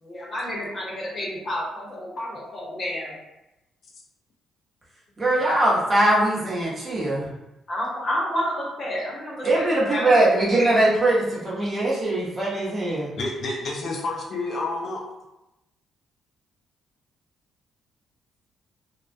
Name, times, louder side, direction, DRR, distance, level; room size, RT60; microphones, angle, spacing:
voice 1, 0.0-3.1 5.5-5.6 7.7-10.3, equal, 40° left, -3 dB, 0.8 m, -30 dB
voice 2, 5.2-7.3 9.4-13.1, right 1 dB, 30° right, -6 dB, 0.9 m, -21 dB
voice 3, 13.1-15.0, left 2 dB, 60° left, -1 dB, 0.4 m, -29 dB
2.2 x 2.1 x 2.6 m, 0.94 s
cardioid pair, 90°, 0 cm